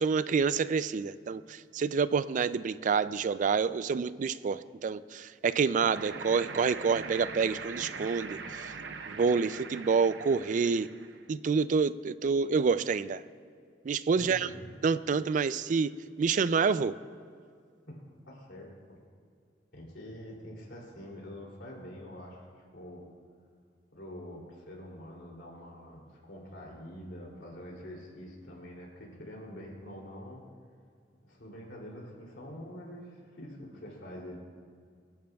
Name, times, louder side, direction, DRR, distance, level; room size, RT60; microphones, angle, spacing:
voice 1, 0.0-8.7 9.1-10.9 11.3-13.2 13.8-14.5 14.8-15.9 16.2-16.9, right 5 dB, 45° right, 15 dB, 0.3 m, -28 dB
sound 1, 5.8-11.3, right 4 dB, 85° right, 0.7 m, -42 dB
voice 2, 14.1-14.7 17.8-18.0 18.2-19.0 19.7-23.0 23.9-30.4 31.2-34.4, equal, 85° left, -2 dB, 2.9 m, -45 dB
25.0 x 10.5 x 2.3 m, 2.2 s
head